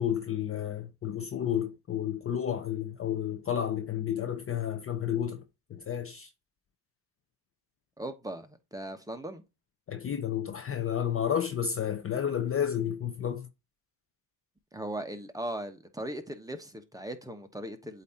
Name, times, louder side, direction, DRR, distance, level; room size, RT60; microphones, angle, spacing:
voice 1, 0.0-5.4 5.7-6.3 9.9-13.5, left 9 dB, 25° left, 0.6 m, -31 dB
voice 2, 8.0-9.4 14.7-18.0, right 1 dB, 5° right, 1.0 m, -38 dB
8.1 x 2.8 x 4.4 m
supercardioid pair, 90°, 50 cm